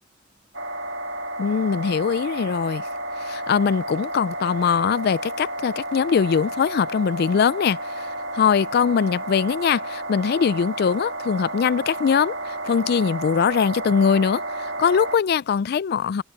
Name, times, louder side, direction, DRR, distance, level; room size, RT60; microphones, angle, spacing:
sound 1, 0.5-15.2, right 1 dB, 70° right, 2.3 m, -31 dB
voice 1, 1.4-2.8 3.2-16.2, left 6 dB, 55° left, 0.3 m, -22 dB
open air
head